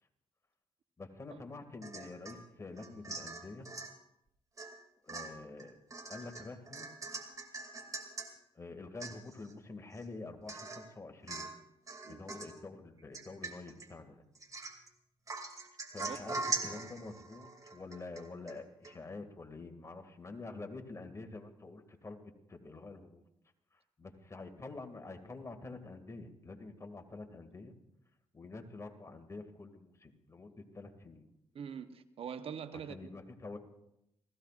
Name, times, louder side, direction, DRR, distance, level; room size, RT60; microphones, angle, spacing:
voice 1, 1.0-3.7 5.0-5.8 6.1-6.9 8.5-11.5 12.1-14.2 15.9-23.2 23.7-27.8 28.3-31.3 32.9-33.6, left 3 dB, 25° left, 2.2 m, -47 dB
Domestic sounds home sounds / Chink clink / Drip, 1.8-2.4 2.8-3.9 4.6-4.8 5.1-8.3 8.7-8.8 9.0-9.5 9.9-10.0 10.5-10.9 11.3-11.6 11.9-12.6 13.1-13.9 14.3-14.9 15.3-18.6 18.8-18.9, right 3 dB, 30° right, 2.5 m, -42 dB
voice 2, 16.0-16.4 31.5-33.0, right 7 dB, 65° right, 0.9 m, -44 dB
29.0 x 16.0 x 2.5 m
cardioid pair, 80°, 11 cm